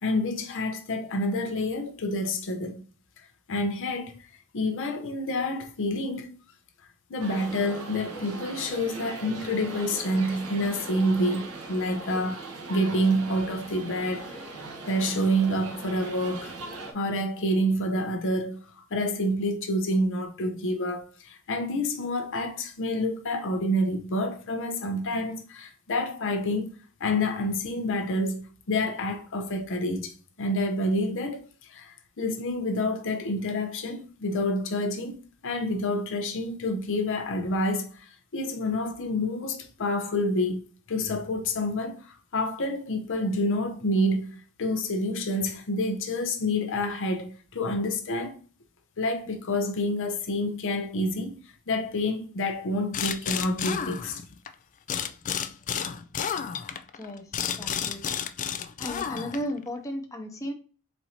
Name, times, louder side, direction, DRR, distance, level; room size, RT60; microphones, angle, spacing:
voice 1, 0.0-2.8 3.5-4.1 4.5-6.3 7.1-12.4 12.7-14.4 14.9-16.6 16.9-26.7 27.0-31.4 31.7-40.6 40.9-48.4 49.0-51.4 51.7-54.2, left 1 dB, 60° left, 0.7 m, -28 dB
sound 1, 7.2-16.9, right 3 dB, 80° right, 1.1 m, -40 dB
sound 2, 52.9-54.5 54.9-59.6, left 8 dB, 35° left, 0.3 m, -31 dB
voice 2, 56.9-57.3 57.6-58.0 58.8-60.5, equal, 15° left, 0.7 m, -34 dB
4.3 x 2.7 x 4.2 m
head